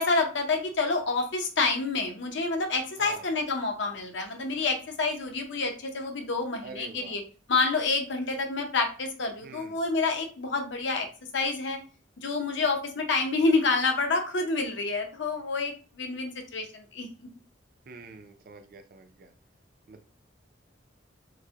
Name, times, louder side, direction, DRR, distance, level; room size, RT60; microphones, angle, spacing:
voice 1, 0.0-7.2 7.5-11.1 11.3-11.8 12.2-17.3, left 3 dB, 65° left, 4 dB, 0.7 m, -28 dB
voice 2, 6.6-7.2 9.4-9.8 17.9-19.3 19.9-20.0, right 3 dB, 50° right, 7 dB, 0.4 m, -46 dB
4.6 x 2.1 x 2.8 m, 0.37 s
head